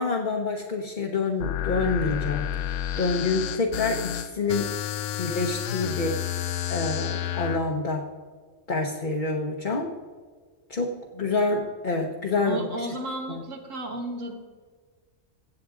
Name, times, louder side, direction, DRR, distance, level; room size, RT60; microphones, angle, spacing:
voice 1, 0.0-4.8 5.2-6.2 6.7-8.1 8.7-9.9 10.7-12.9 13.3-13.4, left 3 dB, 40° left, 1 dB, 1.0 m, -27 dB
sound 1, 1.4-7.6, left 11 dB, 70° left, 0.9 m, -30 dB
voice 2, 12.4-14.3, right 1 dB, 75° right, 2 dB, 2.0 m, -33 dB
15.5 x 8.6 x 3.8 m, 1.5 s
omnidirectional pair, 1.3 m